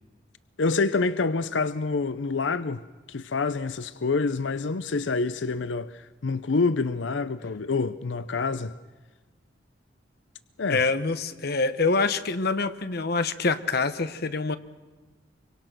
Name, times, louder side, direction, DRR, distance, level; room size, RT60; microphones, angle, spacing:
voice 1, 0.6-2.8 3.1-8.7 10.6-10.8, left 4 dB, 90° left, 0.6 m, -27 dB
voice 2, 10.7-14.6, left 3 dB, 60° left, 1.0 m, -25 dB
25.0 x 24.5 x 6.1 m
head